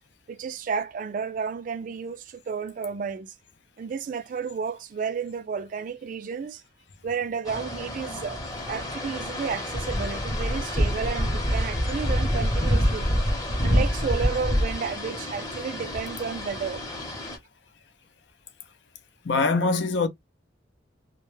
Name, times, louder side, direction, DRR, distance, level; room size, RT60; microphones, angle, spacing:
voice 1, 0.3-3.3 3.8-6.6 7.0-8.4 8.7-13.1 13.6-16.8, right 6 dB, 45° right, 0.3 m, -32 dB
sound 1, 7.5-17.4, equal, 20° left, 0.8 m, -27 dB
voice 2, 19.2-20.1, left 3 dB, 70° left, 0.5 m, -23 dB
2.2 x 2.0 x 3.1 m
head